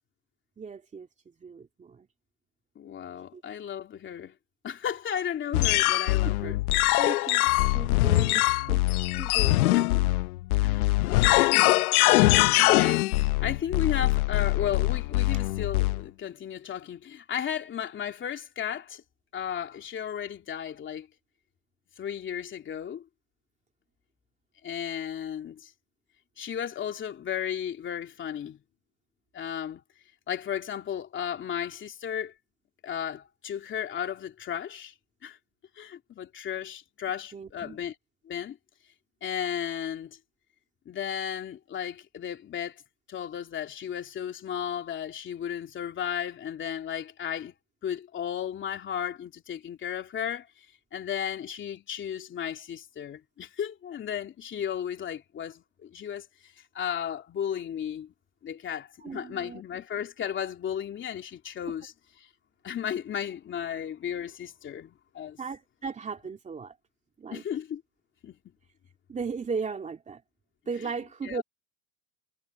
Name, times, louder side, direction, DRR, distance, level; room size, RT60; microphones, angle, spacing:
voice 1, 0.6-1.1 1.4-2.1 3.3-3.4 5.5-5.6 6.2-6.5 7.0-8.8 9.2-10.1 15.3-15.4 37.3-37.8 59.0-59.6 65.4-66.7 67.2-67.4 69.1-70.2 70.7-71.4, right 5 dB, 15° right, 2.7 m, -37 dB
voice 2, 2.7-4.3 4.6-6.6 9.7-9.9 10.6-10.9 11.4-11.9 12.5-13.1 13.4-19.0 19.3-21.1 22.0-23.0 24.6-25.7 26.4-28.6 29.3-29.8 30.3-32.3 32.8-34.9 35.2-35.4 35.8-37.9 38.2-38.6 39.2-40.2 40.8-42.8 43.1-47.5 47.8-50.7 50.9-58.1 58.4-61.9 62.6-65.4 67.3-67.8 68.2-68.4 71.2-71.4, left 9 dB, 25° left, 3.0 m, -34 dB
sound 1, 5.5-16.0, left 19 dB, 85° left, 0.9 m, -23 dB
supercardioid pair, 140°, 42 cm